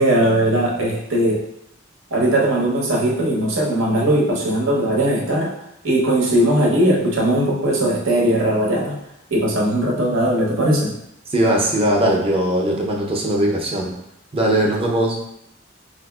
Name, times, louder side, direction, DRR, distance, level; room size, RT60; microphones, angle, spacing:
voice 1, 0.0-1.4 2.1-5.5 5.8-9.0 9.3-10.9, right 1 dB, 85° right, -2 dB, 0.8 m, -19 dB
voice 2, 11.3-13.9 14.3-15.2, right 1 dB, 30° right, -1 dB, 0.5 m, -19 dB
4.2 x 2.5 x 2.3 m, 0.79 s
head